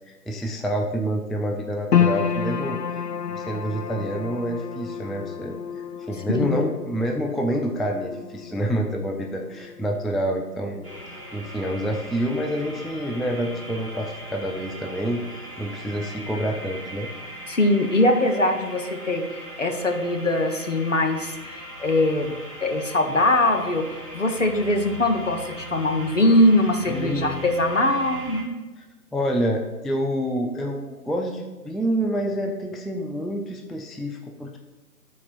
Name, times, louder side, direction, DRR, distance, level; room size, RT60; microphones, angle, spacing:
voice 1, 0.1-2.8 3.3-5.6 6.1-10.8 11.3-17.1 26.9-27.4 29.1-34.6, equal, ahead, 1 dB, 0.3 m, -27 dB
sound 1, 1.9-14.3 14.6-15.5 16.0-16.1, left 8 dB, 85° left, 0.6 m, -31 dB
sound 2, 10.8-28.4, right 1 dB, 20° left, 1.1 m, -39 dB
voice 2, 17.5-22.3 22.6-28.6, left 1 dB, 50° left, 5 dB, 0.8 m, -22 dB
11.0 x 4.2 x 2.5 m, 1.2 s
figure-of-eight pair, 155°, 47 cm